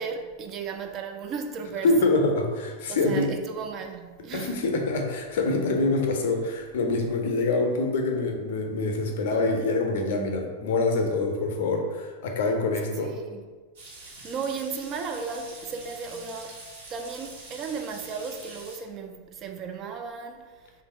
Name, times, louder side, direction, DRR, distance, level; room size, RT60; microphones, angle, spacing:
voice 1, 0.0-1.9 2.9-4.6 13.0-13.4 14.0-16.6 16.9-20.7, right 5 dB, 30° right, 0.4 m, -35 dB
voice 2, 1.8-3.3 4.3-13.1, left 3 dB, 55° left, 0.6 m, -25 dB
sound 1, 13.7-18.8, right 2 dB, 60° right, 1.4 m, -45 dB
3.4 x 2.5 x 4.3 m
figure-of-eight pair, 90°, 0 cm